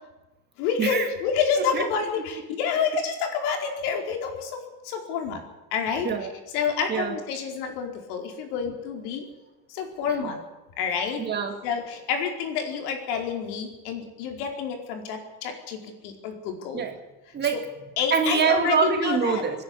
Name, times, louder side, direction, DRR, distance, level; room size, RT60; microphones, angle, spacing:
voice 1, 0.6-4.6 4.8-5.4 5.7-6.1 6.5-9.2 9.7-10.4 10.8-11.2 11.6-16.8 17.4-17.6 18.0-19.4, left 6 dB, 80° left, 4 dB, 4.7 m, -28 dB
voice 2, 1.6-1.9 6.0-6.3 6.6-7.2 8.7-8.8 10.1-10.3 11.2-11.6 16.7-17.0 17.3-19.6, right 6 dB, 20° right, 5 dB, 2.2 m, -26 dB
26.0 x 10.5 x 9.8 m, 1.1 s
cardioid pair, 170°, 45 cm